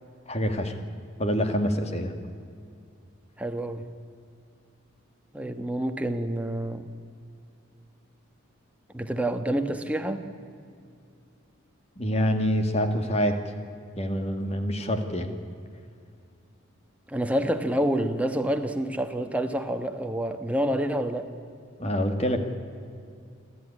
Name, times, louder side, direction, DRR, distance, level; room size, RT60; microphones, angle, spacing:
voice 1, 0.3-0.7 1.2-2.1 12.0-13.4 14.0-15.3 21.8-22.4, equal, 30° left, 6 dB, 1.9 m, -26 dB
voice 2, 3.4-3.8 5.3-6.9 8.9-10.3 17.1-21.3, right 1 dB, 5° right, 6 dB, 1.3 m, -28 dB
28.0 x 13.0 x 9.8 m, 2.4 s
head